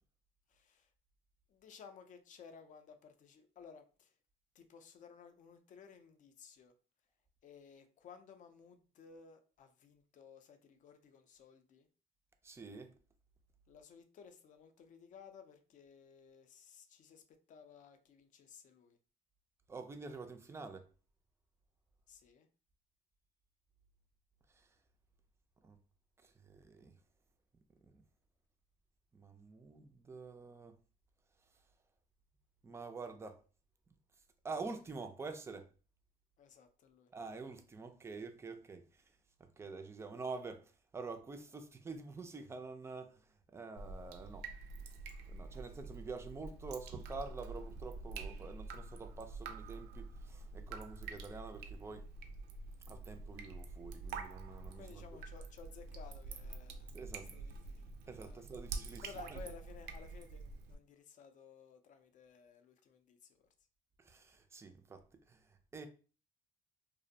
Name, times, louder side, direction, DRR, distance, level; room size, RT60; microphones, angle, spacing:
voice 1, 0.5-0.9 1.5-4.2 4.5-6.7 7.4-11.9 13.7-19.0 22.1-22.5 36.4-37.1 54.7-58.6 59.0-63.5, left 6 dB, 50° left, 0.4 m, -57 dB
voice 2, 12.4-12.9 19.7-20.9 24.5-24.8 25.6-25.8 26.2-27.0 27.8-28.0 29.1-30.8 32.6-33.4 34.4-35.7 37.1-44.5 45.3-52.1 52.9-55.0 56.9-57.3 58.1-59.4 64.0-65.9, right 4 dB, 15° right, 0.3 m, -47 dB
Drip, 43.8-60.8, right 4 dB, 75° right, 0.4 m, -47 dB
2.5 x 2.0 x 2.6 m
cardioid pair, 110°, 17 cm